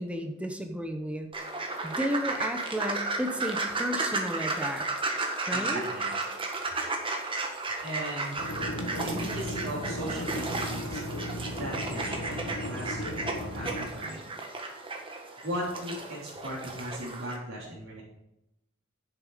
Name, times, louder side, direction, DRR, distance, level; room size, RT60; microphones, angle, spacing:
voice 1, 0.0-1.3 1.8-4.8 5.5-5.8, equal, 5° right, 5 dB, 0.8 m, -33 dB
sound 1, 1.3-17.4, right 3 dB, 25° right, 1.5 m, -34 dB
voice 2, 5.5-6.1 7.8-11.0 11.5-15.0 15.3-18.0, equal, 75° right, -10 dB, 3.8 m, -38 dB
sound 2, 8.4-13.9, equal, 75° left, 1.4 m, -36 dB
10.5 x 8.1 x 5.1 m, 0.86 s
head